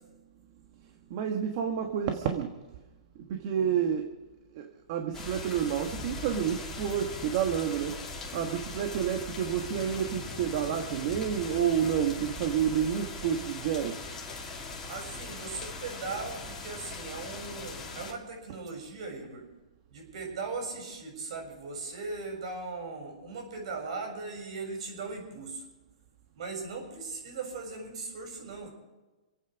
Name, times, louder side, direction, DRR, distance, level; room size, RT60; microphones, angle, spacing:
voice 1, 1.1-2.6 3.1-4.1 4.5-8.0 8.3-14.0, right 8 dB, 45° right, 5 dB, 1.5 m, -29 dB
sound 1, 5.1-18.1, left 2 dB, 15° left, 2.9 m, -40 dB
voice 2, 14.9-19.4 19.9-25.6 26.3-28.7, right 4 dB, 60° right, 2 dB, 6.9 m, -39 dB
26.5 x 9.0 x 5.2 m, 1.1 s
hypercardioid pair, 150°, 4 cm